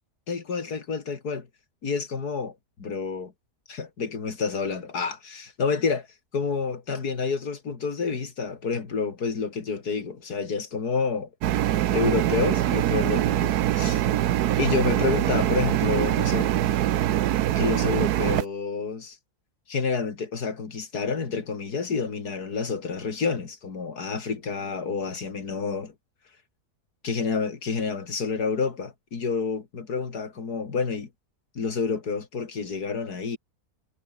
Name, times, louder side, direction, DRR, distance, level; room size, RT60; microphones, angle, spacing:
voice 1, 0.3-1.5 1.8-3.3 3.7-6.1 6.3-11.3 11.9-14.0 14.6-16.5 17.6-19.2 19.7-25.9 27.0-31.1 31.5-33.4, left 5 dB, 85° left, 3.0 m, -29 dB
sound 1, 11.4-18.4, right 12 dB, 85° right, 1.3 m, -23 dB
omnidirectional pair, 1.6 m